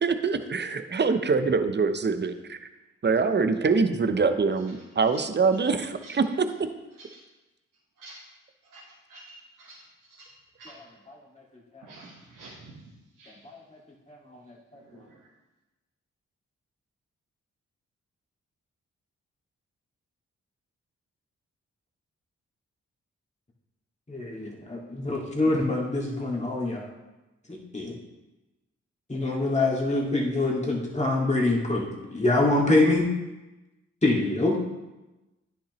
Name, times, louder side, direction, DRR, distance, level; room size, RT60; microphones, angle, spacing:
voice 1, 0.0-2.7 3.0-6.5, right 4 dB, 35° right, 9 dB, 0.7 m, -24 dB
voice 2, 9.1-9.7 10.6-10.8 11.8-12.6 13.2-13.3 14.9-15.0, right 2 dB, 85° right, -6 dB, 1.6 m, -48 dB
voice 3, 10.8-11.2 11.7-11.8 13.4-13.6 14.1-14.4 24.1-26.9 27.5-27.9 29.1-33.1 34.0-34.6, left 2 dB, 20° left, -2 dB, 2.1 m, -25 dB
9.8 x 5.9 x 3.1 m, 1.1 s
supercardioid pair, 45°, 31 cm